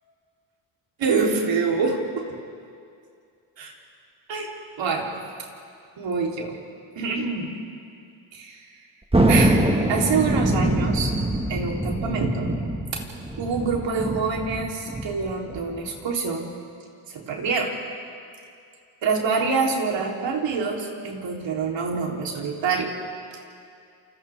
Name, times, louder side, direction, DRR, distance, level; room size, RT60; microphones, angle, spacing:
voice 1, 1.0-2.3 3.6-3.7 4.3-4.5 4.8-5.2 6.0-6.6 7.0-7.5 8.3-8.7 9.3-9.6 9.9-11.1 11.5-12.6 12.9-13.1 13.4-16.5 17.1-17.7 19.0-22.9, right 4 dB, 70° right, -1 dB, 3.7 m, -26 dB
Thunder, 9.1-16.0, right 1 dB, 10° right, 1.8 m, -24 dB
28.0 x 27.0 x 3.6 m, 2.4 s
cardioid pair, 85°, 46 cm